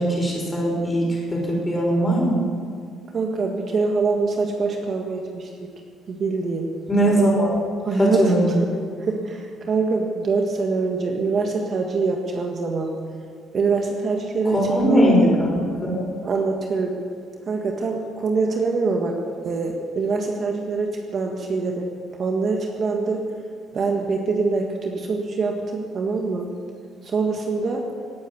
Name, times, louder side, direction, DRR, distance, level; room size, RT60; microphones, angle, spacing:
voice 1, 0.0-2.4 6.9-7.6 8.0-8.6 14.5-16.0, right 1 dB, 15° left, -2 dB, 5.7 m, -20 dB
voice 2, 3.1-5.7 6.1-6.8 7.8-13.0 13.5-15.3 16.2-17.0 17.5-23.3 23.7-26.5 27.0-27.9, right 4 dB, 40° right, 2 dB, 1.6 m, -24 dB
18.5 x 9.1 x 8.5 m, 2.1 s
cardioid pair, 130°, 0 cm